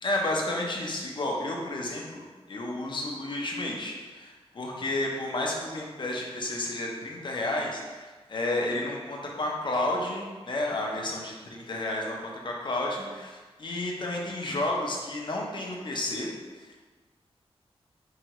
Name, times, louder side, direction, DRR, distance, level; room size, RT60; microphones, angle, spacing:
voice 1, 0.0-16.3 16.6-16.8, left 1 dB, 50° left, -1 dB, 0.6 m, -31 dB
4.7 x 2.7 x 3.0 m, 1.3 s
wide cardioid pair, 145°, 11 cm